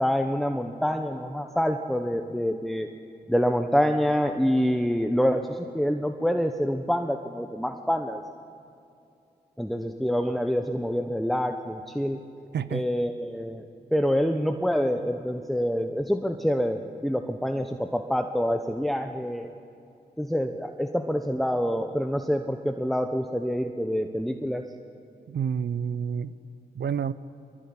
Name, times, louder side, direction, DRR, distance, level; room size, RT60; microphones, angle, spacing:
voice 1, 0.0-2.9 3.3-8.2 9.6-12.2 12.7-13.6 13.9-19.5 20.2-24.6, equal, ahead, 6 dB, 1.1 m, -26 dB
voice 2, 12.5-12.8 25.3-26.4 26.7-27.1, right 7 dB, 80° right, 16 dB, 0.8 m, -29 dB
21.5 x 20.5 x 9.9 m, 2.6 s
cardioid pair, 55°, 17 cm